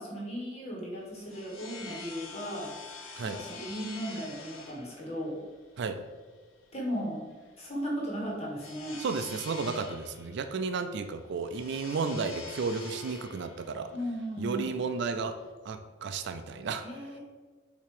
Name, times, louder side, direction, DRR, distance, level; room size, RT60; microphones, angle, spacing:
voice 1, 0.0-2.7 3.2-5.4 6.7-7.2 7.6-9.0 13.9-14.8 16.8-17.2, equal, 30° left, -3 dB, 1.5 m, -36 dB
sound 1, 0.9-15.5, left 4 dB, 85° left, 1.2 m, -47 dB
voice 2, 9.0-13.9 14.4-15.4 15.6-16.8, right 4 dB, 60° right, 9 dB, 0.4 m, -33 dB
6.8 x 2.9 x 4.8 m, 1.4 s
head